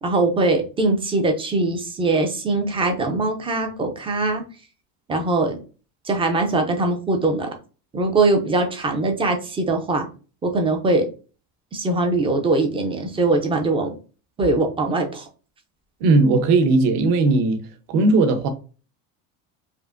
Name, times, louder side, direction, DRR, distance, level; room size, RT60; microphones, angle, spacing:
voice 1, 0.0-4.4 5.1-5.6 6.1-7.5 7.9-10.1 10.4-11.0 11.7-13.9 14.4-15.2, right 2 dB, 15° right, 0.4 m, -21 dB
voice 2, 16.0-17.6 17.9-18.5, right 3 dB, 60° right, 0.9 m, -17 dB
4.9 x 2.5 x 2.5 m
cardioid pair, 165°, 41 cm